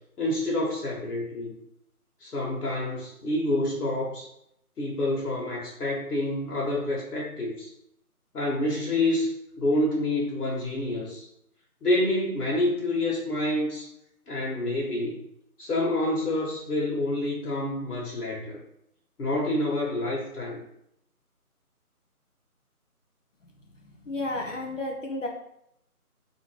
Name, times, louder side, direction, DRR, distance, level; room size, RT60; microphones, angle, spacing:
voice 1, 0.2-1.5 2.2-4.3 4.8-7.7 8.3-9.3 9.6-11.2 11.8-13.9 14.3-15.2 15.6-18.6 19.2-20.6, left 1 dB, 85° left, -4 dB, 1.0 m, -27 dB
voice 2, 23.8-25.3, left 2 dB, 55° left, 0 dB, 0.5 m, -32 dB
2.7 x 2.6 x 2.9 m, 0.77 s
figure-of-eight pair, 165°, 45 cm